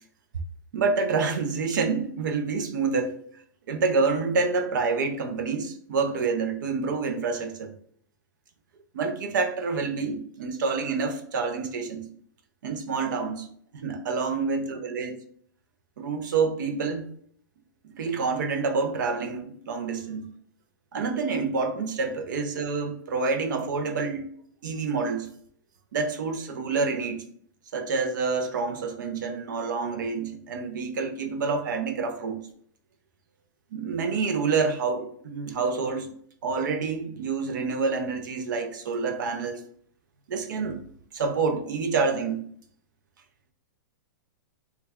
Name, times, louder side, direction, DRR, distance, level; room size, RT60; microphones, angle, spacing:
voice 1, 0.7-3.2 3.7-7.7 8.9-12.1 12.6-13.5 13.7-15.2 16.0-17.1 17.8-20.3 20.9-24.3 24.6-25.3 25.9-27.2 27.7-32.5 33.7-36.1 36.4-39.6 40.3-40.8 41.1-42.4, right 4 dB, 75° right, 0.7 m, -27 dB
3.2 x 2.3 x 3.5 m
hypercardioid pair, 145°, 10 cm